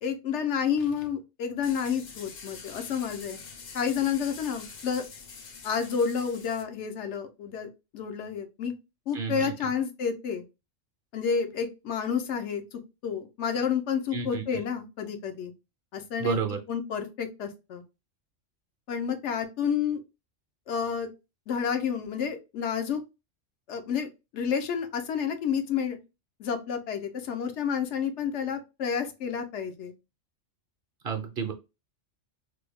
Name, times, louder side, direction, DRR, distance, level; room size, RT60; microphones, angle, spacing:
voice 1, 0.0-3.4 3.7-5.0 5.6-8.7 9.1-10.4 11.1-15.5 15.9-16.4 16.7-17.8 18.9-20.0 20.7-21.1 21.5-23.0 23.7-26.0 26.4-29.9, left 7 dB, 70° left, 7 dB, 0.9 m, -30 dB
sound 1, 1.6-6.6, left 5 dB, 50° left, 0.6 m, -45 dB
voice 2, 9.1-9.5 14.1-14.6 16.2-16.6 31.0-31.5, right 6 dB, 55° right, 4 dB, 0.8 m, -31 dB
3.4 x 2.2 x 3.3 m, 0.26 s
omnidirectional pair, 1.3 m